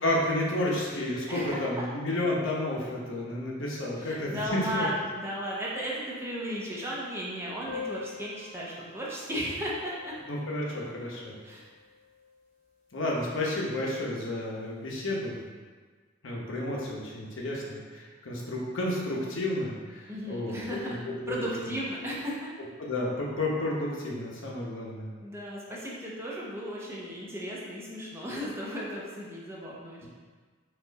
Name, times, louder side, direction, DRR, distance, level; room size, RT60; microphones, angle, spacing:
voice 1, 0.0-4.9 10.3-11.4 12.9-15.4 16.2-21.5 22.8-25.1, left 1 dB, 65° left, -3 dB, 0.9 m, -31 dB
voice 2, 1.3-1.8 4.0-10.2 11.4-11.7 20.1-22.5 25.2-30.1, equal, 10° right, -6 dB, 0.7 m, -35 dB
sound 1, 7.7-12.6, left 5 dB, 35° left, 0.8 m, -45 dB
4.4 x 2.5 x 4.0 m, 1.5 s
head